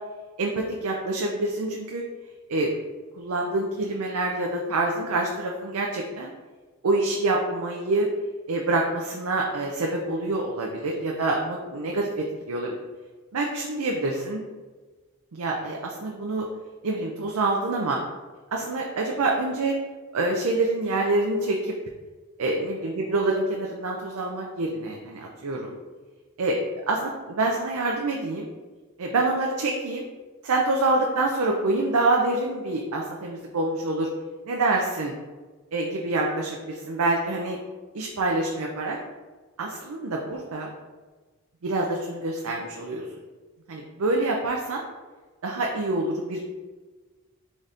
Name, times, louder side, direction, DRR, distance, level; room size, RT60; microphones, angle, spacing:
voice 1, 0.4-2.0 2.5-2.7 3.2-6.3 6.8-8.1 8.5-12.8 13.3-14.4 15.3-16.5 16.8-18.0 18.5-19.7 20.1-21.7 22.4-25.8 26.4-26.6 26.9-28.5 29.0-30.0 30.4-34.1 34.4-35.1 35.7-37.6 37.9-39.0 39.6-40.7 41.6-43.1 43.7-44.8 45.4-46.4, right 2 dB, 80° right, 0 dB, 0.5 m, -26 dB
4.0 x 3.7 x 3.4 m, 1.3 s
head